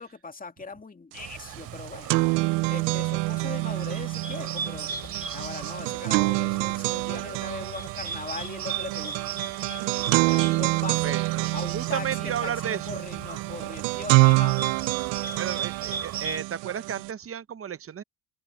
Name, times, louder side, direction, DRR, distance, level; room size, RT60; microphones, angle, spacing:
voice 1, 0.0-2.2 2.7-4.9 5.3-11.2 11.5-14.6, left 4 dB, 20° left, 2.6 m, -39 dB
sound 1, 1.2-1.3 2.4-2.5 3.0-8.1 8.6-9.8 10.3-16.4, left 24 dB, 85° left, 6.8 m, -58 dB
Bird, 1.2-16.4, right 7 dB, 55° right, 2.9 m, -38 dB
sound 2, 1.2-1.3 1.6-17.1, right 26 dB, 90° right, 0.6 m, -27 dB
voice 2, 11.0-13.0 15.4-18.0, right 9 dB, 30° right, 0.9 m, -33 dB
supercardioid pair, 95°, 42 cm